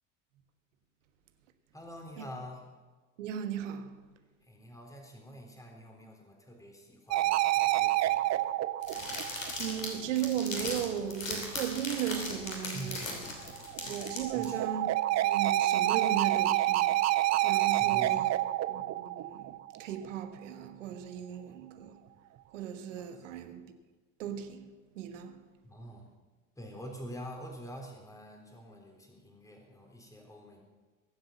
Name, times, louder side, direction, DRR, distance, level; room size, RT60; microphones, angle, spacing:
voice 1, 1.7-2.7 4.4-8.6 12.7-13.6 14.3-14.9 16.0-16.1 17.8-18.3 22.9-23.3 25.6-26.1 26.6-30.6, equal, 10° left, 3.7 m, -47 dB
voice 2, 3.2-4.0 9.6-13.2 13.9-14.9 15.2-17.0 17.4-18.3 18.7-22.0 22.5-23.7 24.2-25.4, right 9 dB, 75° right, 1.5 m, -36 dB
sound 1, 7.1-9.9 13.4-19.9, right 15 dB, 45° right, 0.9 m, -28 dB
sound 2, 8.8-14.5, left 2 dB, 90° left, 3.0 m, -38 dB
22.0 x 7.9 x 7.0 m
hypercardioid pair, 70°, 38 cm